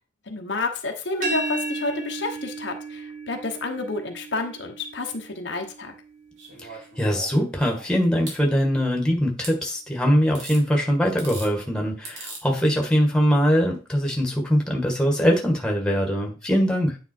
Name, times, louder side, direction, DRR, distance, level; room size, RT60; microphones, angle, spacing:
voice 1, 0.3-5.9, left 3 dB, 65° left, 3 dB, 1.1 m, -30 dB
sound 1, 1.2-7.0, right 3 dB, 45° right, 1.6 m, -35 dB
sound 2, 6.4-8.4 9.4-9.6 10.3-10.6 11.1-11.5 12.0-12.4 13.7-13.8, right 3 dB, 70° right, 2.9 m, -40 dB
voice 2, 6.7-17.0, equal, 5° left, 1 dB, 1.6 m, -22 dB
9.4 x 3.5 x 4.5 m, 0.34 s
head